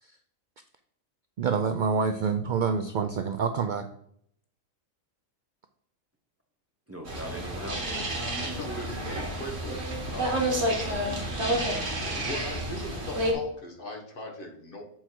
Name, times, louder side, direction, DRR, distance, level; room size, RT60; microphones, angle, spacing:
voice 1, 1.4-3.9, right 5 dB, 70° right, 8 dB, 0.4 m, -27 dB
voice 2, 6.9-9.3, right 1 dB, 15° right, 2 dB, 0.9 m, -40 dB
sound 1, 7.1-13.3, right 1 dB, 55° right, 2.0 m, -30 dB
voice 3, 8.4-11.2 11.9-14.8, left 1 dB, 45° left, 1 dB, 1.4 m, -40 dB
7.5 x 4.5 x 4.5 m, 0.68 s
omnidirectional pair, 1.4 m